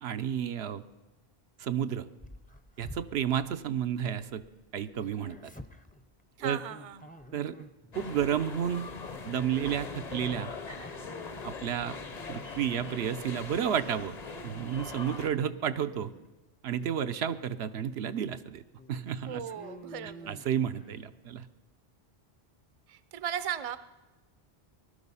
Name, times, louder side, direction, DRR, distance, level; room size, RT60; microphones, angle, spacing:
voice 1, 0.0-0.8 1.6-2.1 2.8-4.4 4.7-5.5 6.4-6.6 7.3-7.7 8.0-8.9 9.2-10.5 11.4-11.9 12.3-14.2 14.4-16.1 16.6-18.6 18.9-19.4 20.3-21.5, right 9 dB, 80° right, 10 dB, 0.9 m, -31 dB
Dog, 2.2-4.5 4.8-8.1 8.5-8.8 9.6-12.7 13.1-13.8 14.2-14.6 15.0-16.3 16.7-16.9 17.5-17.6 18.0-18.1 18.7-21.0, equal, 10° left, 0.6 m, -50 dB
voice 2, 6.4-7.1 19.3-20.4 22.9-23.8, right 9 dB, 40° right, 14 dB, 0.6 m, -37 dB
sound 1, 7.9-15.3, left 4 dB, 40° left, 0.9 m, -41 dB
19.5 x 12.0 x 5.5 m, 1.1 s
omnidirectional pair, 1.1 m